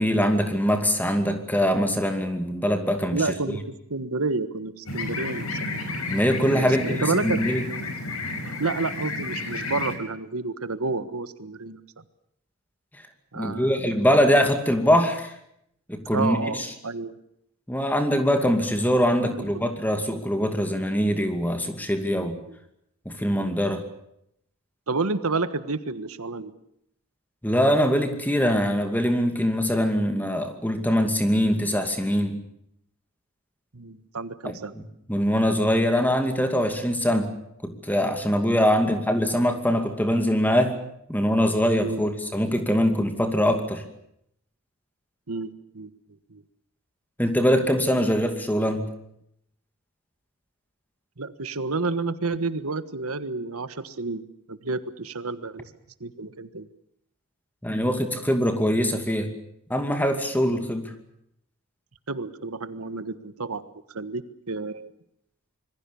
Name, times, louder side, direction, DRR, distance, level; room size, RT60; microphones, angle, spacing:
voice 1, 0.0-3.2 6.1-7.6 13.4-15.3 15.9-16.7 17.7-22.4 23.1-23.8 27.4-32.4 34.4-34.8 35.1-37.3 37.6-40.8 41.1-43.8 47.2-48.9 57.6-59.3 59.7-60.9, equal, 10° left, 6 dB, 2.5 m, -23 dB
voice 2, 3.1-5.6 6.5-7.4 8.6-11.8 13.3-14.1 16.1-17.1 19.2-19.6 22.5-22.6 24.9-26.5 33.7-34.7 38.4-38.6 41.8-42.0 45.3-45.5 45.7-45.9 46.3-46.4 51.2-55.7 56.0-56.7 62.1-63.6 63.9-64.9, right 3 dB, 85° right, 12 dB, 1.5 m, -30 dB
sound 1, 4.9-10.0, left 2 dB, 85° left, 5.5 m, -31 dB
26.0 x 22.0 x 7.1 m, 0.74 s
head